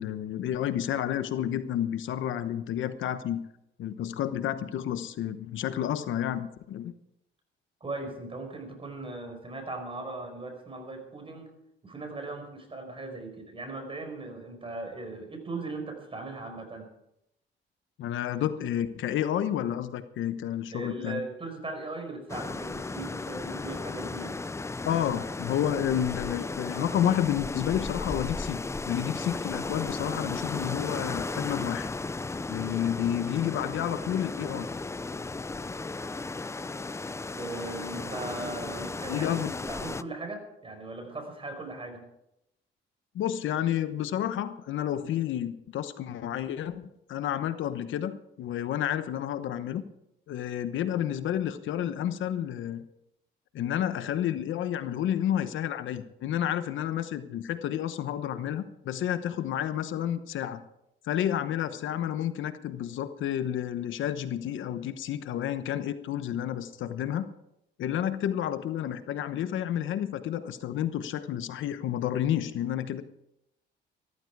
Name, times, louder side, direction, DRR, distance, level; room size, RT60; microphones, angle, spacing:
voice 1, 0.0-3.4 3.8-6.9 18.0-21.2 24.8-31.9 32.5-34.7 39.1-39.5 43.1-49.8 50.3-52.8 53.5-60.6 61.0-67.3 67.8-73.0, left 10 dB, 75° left, 11 dB, 1.0 m, -30 dB
voice 2, 7.8-11.5 11.8-16.9 20.7-24.4 37.3-42.0, right 2 dB, 25° right, 4 dB, 5.1 m, -38 dB
sound 1, 22.3-40.0, left 3 dB, 15° left, 0.5 m, -35 dB
14.5 x 14.0 x 4.8 m, 0.81 s
cardioid pair, 90°, 20 cm